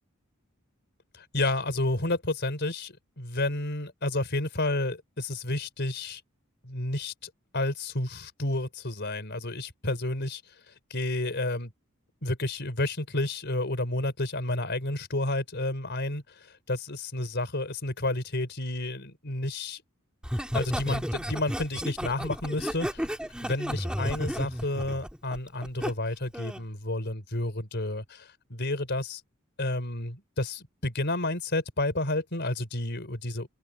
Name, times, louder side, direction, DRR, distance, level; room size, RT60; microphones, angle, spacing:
voice 1, 1.1-6.2 6.6-10.4 10.7-11.7 12.2-19.8 20.5-23.1 23.4-29.2 29.6-33.5, left 2 dB, 55° left, 4.6 m, -31 dB
Laughter, 20.2-25.9 26.3-26.7, equal, 5° right, 3.6 m, -32 dB
head